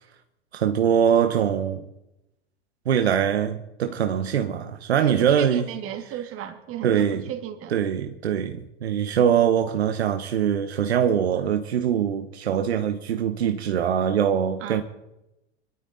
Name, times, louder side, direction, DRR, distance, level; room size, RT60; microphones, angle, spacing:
voice 1, 0.5-1.8 2.8-5.7 6.8-7.2 7.7-14.8, right 8 dB, 80° right, 1.2 m, -23 dB
voice 2, 5.0-7.8 14.6-14.8, right 10 dB, 45° right, 2.5 m, -35 dB
24.5 x 12.5 x 4.0 m
hypercardioid pair, 90°, 32 cm